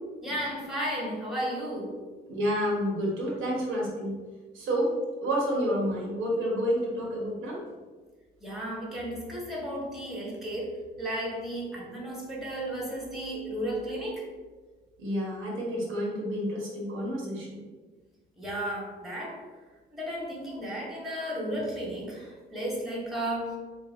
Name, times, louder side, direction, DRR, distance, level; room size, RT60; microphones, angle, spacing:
voice 1, 0.2-1.9 8.4-14.2 18.4-19.4 19.9-23.6, right 1 dB, ahead, -4 dB, 1.2 m, -34 dB
voice 2, 2.3-4.1 4.5-4.9 5.2-7.6 15.0-17.6, equal, 85° right, -3 dB, 1.3 m, -29 dB
3.4 x 2.6 x 4.0 m, 1.3 s
cardioid pair, 90°, 20 cm